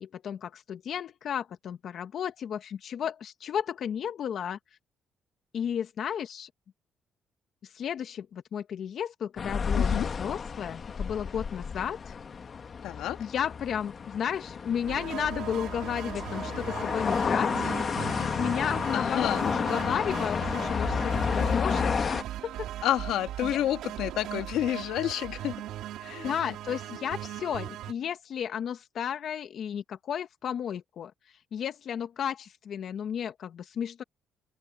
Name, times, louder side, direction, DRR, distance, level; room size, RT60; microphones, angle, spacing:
voice 1, 0.0-4.6 5.5-6.5 7.6-12.2 13.2-17.7 18.4-22.7 23.4-23.6 26.2-31.1 31.5-34.0, left 8 dB, 60° left, 1.2 m, -33 dB
sound 1, 9.4-22.2, left 5 dB, 40° left, 1.7 m, -31 dB
voice 2, 9.7-10.1 12.8-13.2 18.9-19.4 22.8-25.5 26.0-26.3, left 12 dB, 85° left, 1.6 m, -29 dB
sound 2, 14.9-27.9, right 12 dB, 85° right, 2.9 m, -39 dB
open air
cardioid pair, 90°, 0 cm